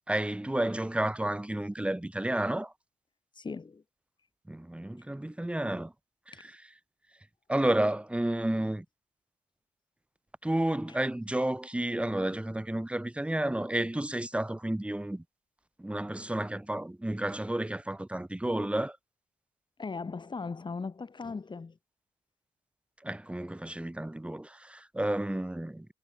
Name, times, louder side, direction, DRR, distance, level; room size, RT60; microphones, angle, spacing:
voice 1, 0.0-2.7 4.5-5.9 6.3-6.5 7.5-8.8 10.4-15.2 15.8-19.0 23.0-25.9, right 1 dB, 10° right, 1.3 m, -31 dB
voice 2, 3.3-3.8 6.3-6.5 19.8-21.8, left 4 dB, 35° left, 2.1 m, -38 dB
supercardioid pair, 50°, 13 cm